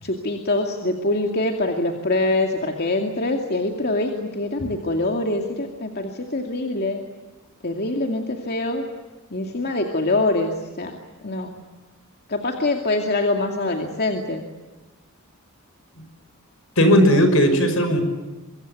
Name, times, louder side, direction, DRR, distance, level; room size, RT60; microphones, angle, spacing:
voice 1, 0.0-7.0 7.6-8.9 9.3-10.9 11.2-11.6 12.3-14.4, left 2 dB, 50° left, 2 dB, 2.5 m, -24 dB
voice 2, 16.8-18.0, equal, 75° left, 8 dB, 5.9 m, -16 dB
25.5 x 22.5 x 9.5 m, 1.1 s
head